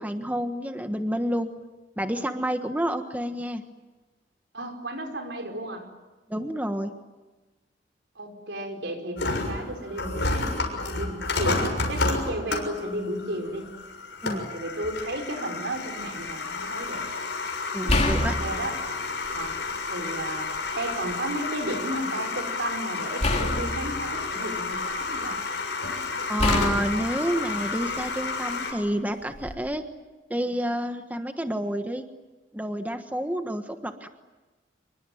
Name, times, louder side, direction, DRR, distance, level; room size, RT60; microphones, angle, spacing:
voice 1, 0.0-1.5 2.0-3.6 6.3-6.9 14.2-14.4 17.7-18.4 26.3-29.8 30.3-32.0 32.5-34.1, equal, 10° right, 6 dB, 1.3 m, -29 dB
voice 2, 4.5-5.9 8.2-11.6 11.9-13.7 14.3-17.0 17.8-18.8 19.3-19.6 19.9-25.4, right 1 dB, 75° right, 5 dB, 5.1 m, -34 dB
sound 1, 9.2-28.7, left 3 dB, 70° left, 6.8 m, -31 dB
sound 2, 16.0-16.3 17.9-19.7 20.2-21.1 23.2-25.2 26.4-28.3 29.3-29.6, left 1 dB, 35° left, 3.2 m, -29 dB
27.0 x 23.5 x 9.3 m, 1.2 s
head